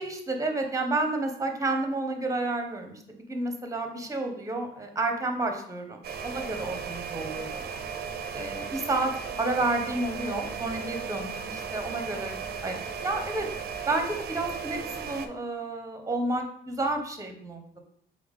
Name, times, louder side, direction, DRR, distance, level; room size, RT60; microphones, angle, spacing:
voice 1, 0.0-7.7 8.3-9.1 9.4-12.4 12.6-13.5 13.9-17.6, right 2 dB, 15° right, 4 dB, 0.8 m, -30 dB
sound 1, 6.0-15.3, right 6 dB, 50° right, 0.5 m, -36 dB
3.8 x 3.5 x 3.6 m, 0.67 s
cardioid pair, 90°, 20 cm